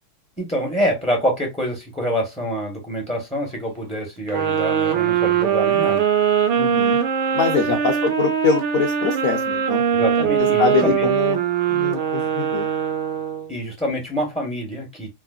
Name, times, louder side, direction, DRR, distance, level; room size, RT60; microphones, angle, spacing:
voice 1, 0.4-6.0 7.7-7.8 9.9-11.1 13.5-15.1, equal, 10° left, 0.4 m, -26 dB
sound 1, 4.3-13.5, right 8 dB, 80° right, 1.5 m, -21 dB
voice 2, 6.6-7.0 7.3-9.8 10.6-11.4 11.7-12.7, left 5 dB, 60° left, 0.9 m, -23 dB
4.6 x 2.1 x 2.3 m
omnidirectional pair, 2.2 m